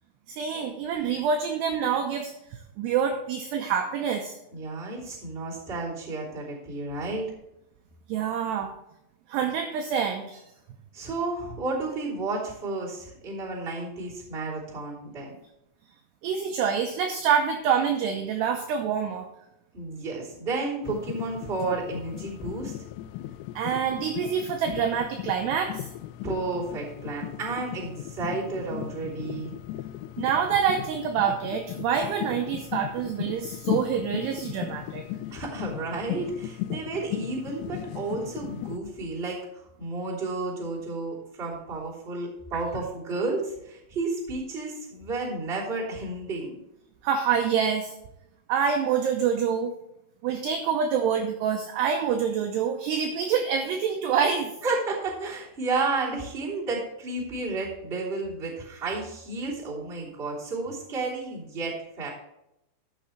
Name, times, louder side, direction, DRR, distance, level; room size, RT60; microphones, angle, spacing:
voice 1, 0.3-4.4 8.1-8.7 9.3-10.4 16.2-19.3 23.6-25.9 30.2-35.1 47.0-47.9 48.5-49.7 50.2-54.5, right 7 dB, 80° right, 4 dB, 2.4 m, -26 dB
voice 2, 4.5-7.3 10.9-15.3 19.7-22.7 26.2-29.5 35.3-46.6 54.6-62.1, right 3 dB, 15° right, -6 dB, 2.4 m, -32 dB
sound 1, 20.8-38.8, left 13 dB, 90° left, 3.2 m, -36 dB
12.5 x 8.0 x 3.2 m, 0.86 s
omnidirectional pair, 5.8 m